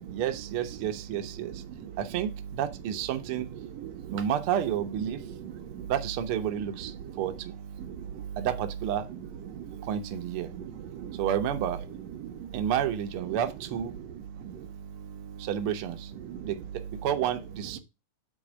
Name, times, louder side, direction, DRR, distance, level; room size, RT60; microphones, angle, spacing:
voice 1, 0.1-1.6 2.0-3.5 4.1-5.2 5.9-7.5 8.4-9.1 9.8-10.5 11.1-11.8 12.5-13.9 15.4-16.1 16.4-17.8, right 9 dB, 90° right, 1.2 m, -30 dB
voice 2, 3.8-4.2 5.3-5.9 7.8-8.4 9.5-9.9 10.5-11.2 12.2-12.5 14.0-15.5 16.2-16.5, right 8 dB, 65° right, 1.9 m, -41 dB
7.6 x 4.2 x 6.1 m
omnidirectional pair, 3.8 m